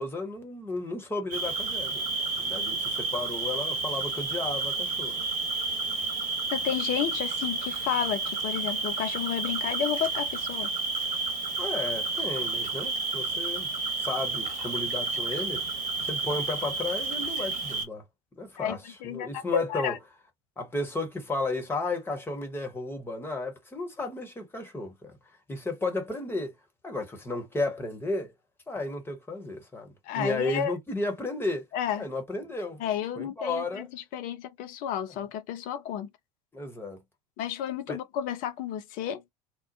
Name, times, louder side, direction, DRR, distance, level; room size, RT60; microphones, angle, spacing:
voice 1, 0.0-2.0 2.4-5.2 11.6-13.7 14.0-15.6 16.0-18.0 18.4-20.0 20.6-25.1 25.5-26.5 26.8-28.3 28.7-31.7 32.0-32.8 33.2-33.9 36.5-37.0 37.9-38.0, left 2 dB, 10° left, 1.0 m, -33 dB
Cricket, 1.3-17.9, right 3 dB, 45° right, 1.1 m, -31 dB
voice 2, 6.5-10.7 18.6-20.0 30.1-30.7 31.7-32.0 32.8-36.1 37.4-39.2, left 9 dB, 45° left, 0.6 m, -32 dB
2.9 x 2.1 x 2.6 m
figure-of-eight pair, 75°, 19 cm